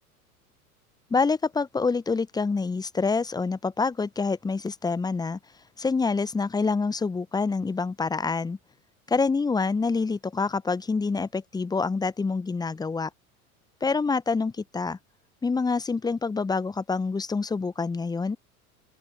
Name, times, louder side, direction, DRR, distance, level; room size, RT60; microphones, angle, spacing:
voice 1, 1.1-5.4 5.8-8.6 9.1-13.1 13.8-15.0 15.4-18.4, left 4 dB, 10° left, 0.8 m, -26 dB
open air
figure-of-eight pair, 80°, 45 cm